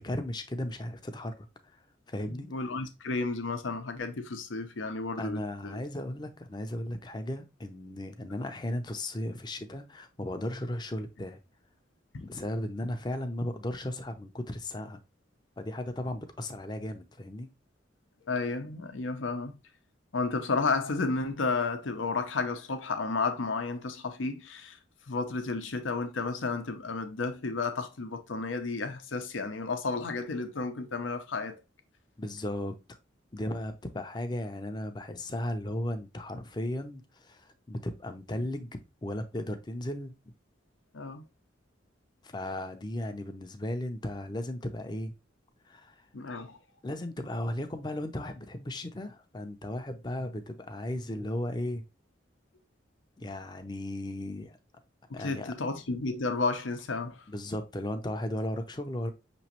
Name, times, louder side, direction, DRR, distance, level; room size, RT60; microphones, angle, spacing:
voice 1, 0.0-1.5 2.1-2.5 5.2-11.4 12.2-15.0 15.6-17.5 32.2-33.0 33.3-40.1 42.2-45.1 45.6-46.1 46.8-51.8 53.2-54.6 55.1-55.5 57.3-59.1, left 1 dB, 20° left, 0.5 m, -36 dB
voice 2, 2.3-5.8 12.1-12.3 18.3-19.6 20.1-24.8 25.1-31.6 40.9-41.2 46.1-46.6 55.1-57.3, left 3 dB, 90° left, 0.7 m, -32 dB
5.9 x 3.1 x 2.8 m
head